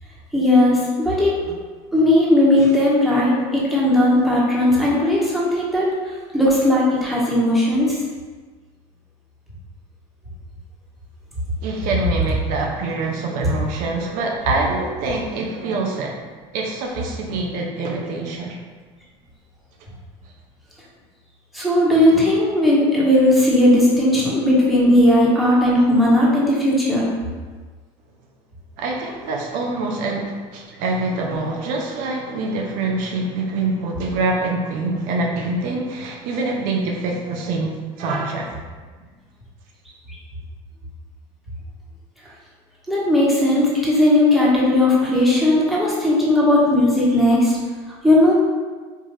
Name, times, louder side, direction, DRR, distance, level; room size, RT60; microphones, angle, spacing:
voice 1, 0.3-1.4 1.9-8.0 21.5-27.1 40.1-40.2 42.9-47.5 47.9-48.3, left 1 dB, ahead, -7 dB, 1.2 m, -17 dB
voice 2, 11.6-16.2 16.5-18.6 28.8-38.5, right 3 dB, 70° right, 0 dB, 0.6 m, -25 dB
4.5 x 2.4 x 3.1 m, 1.4 s
supercardioid pair, 100°, 15 cm